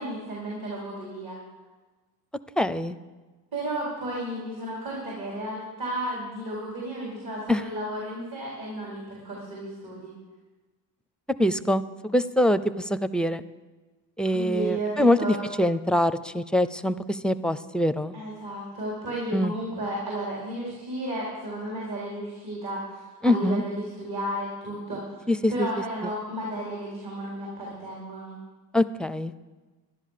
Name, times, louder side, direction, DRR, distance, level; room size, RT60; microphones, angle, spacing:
voice 1, 0.0-1.4 3.5-10.1 14.2-15.4 18.1-25.2 25.5-28.4, right 1 dB, 55° right, -4 dB, 4.5 m, -33 dB
voice 2, 2.6-3.0 7.5-7.6 11.4-11.8 12.1-13.4 14.2-18.1 19.3-19.5 23.2-23.6 25.3-25.7 26.0-26.1 28.7-29.3, left 1 dB, ahead, 13 dB, 0.5 m, -24 dB
13.0 x 11.0 x 6.7 m, 1.2 s
cardioid pair, 90°, 43 cm